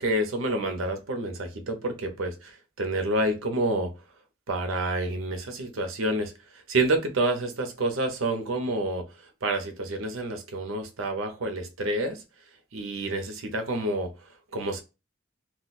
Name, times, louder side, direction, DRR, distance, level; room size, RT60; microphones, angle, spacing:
voice 1, 0.0-3.9 4.5-6.3 6.7-9.0 9.4-12.2 12.7-14.1 14.5-14.8, right 2 dB, 80° right, 0.7 m, -28 dB
2.4 x 2.1 x 3.9 m
head